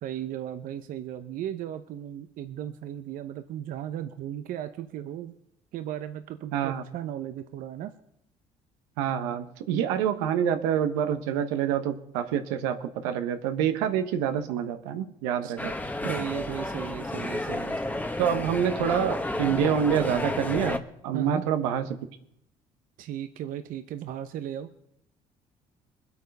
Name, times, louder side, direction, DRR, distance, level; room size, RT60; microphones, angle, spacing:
voice 1, 0.0-5.3 5.7-7.9 15.4-15.6 16.1-17.8 21.1-21.4 23.0-24.7, right 11 dB, 65° right, 9 dB, 0.8 m, -36 dB
voice 2, 6.5-6.8 9.0-15.7 16.0-16.1 18.2-21.9, right 9 dB, 90° right, 8 dB, 1.1 m, -27 dB
sound 1, 15.6-20.8, left 1 dB, 10° left, 1.3 m, -31 dB
21.5 x 8.4 x 5.4 m, 0.75 s
supercardioid pair, 70°, 15 cm